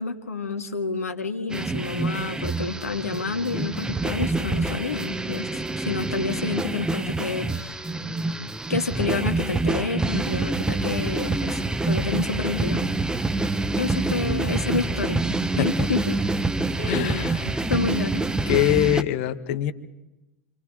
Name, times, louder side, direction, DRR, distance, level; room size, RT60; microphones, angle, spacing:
voice 1, 0.0-7.9 8.7-12.9 13.8-15.2 15.5-16.2 16.8-17.2 17.7-18.3, left 4 dB, 85° left, 6 dB, 1.8 m, -29 dB
sound 1, 1.5-19.0, right 2 dB, 10° right, 1.1 m, -26 dB
voice 2, 16.9-17.7 18.5-19.7, left 12 dB, 55° left, 11 dB, 1.4 m, -24 dB
29.0 x 26.5 x 3.8 m, 1.0 s
figure-of-eight pair, 85°, 8 cm